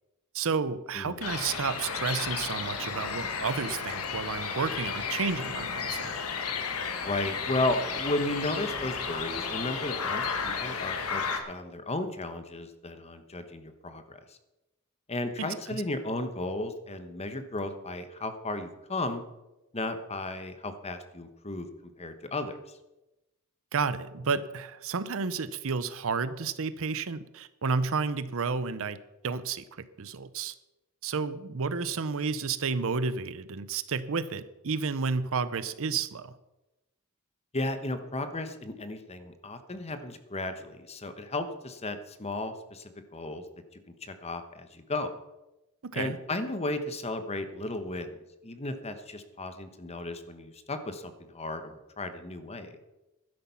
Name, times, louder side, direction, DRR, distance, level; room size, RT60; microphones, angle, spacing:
voice 1, 0.3-6.1 15.4-15.8 23.7-30.5 31.0-36.4 45.8-46.2, right 5 dB, 65° right, 15 dB, 0.7 m, -31 dB
sound 1, 1.2-11.4, left 5 dB, 75° left, 1.6 m, -33 dB
voice 2, 7.0-14.4 15.1-19.2 19.7-21.7 22.0-22.8 37.5-43.4 44.0-45.1 45.9-48.1 48.4-52.8, left 2 dB, 30° left, 9 dB, 1.1 m, -34 dB
12.5 x 10.0 x 5.8 m, 0.98 s
head